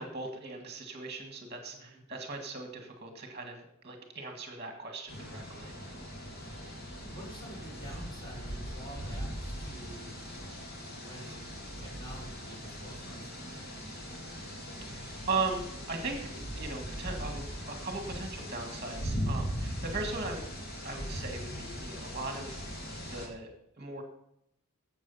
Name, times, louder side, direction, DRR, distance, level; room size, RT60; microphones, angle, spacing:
voice 1, 0.0-3.6 3.8-5.7 14.8-20.5 20.8-22.6 23.0-23.5 23.8-24.0, right 3 dB, 30° right, 4 dB, 1.9 m, -38 dB
voice 2, 1.7-2.0 6.3-6.6 7.0-10.2 11.0-14.7, equal, 20° left, -4 dB, 4.8 m, -50 dB
sound 1, 5.1-23.3, equal, 45° left, 2.6 m, -39 dB
13.0 x 7.9 x 5.6 m, 0.76 s
head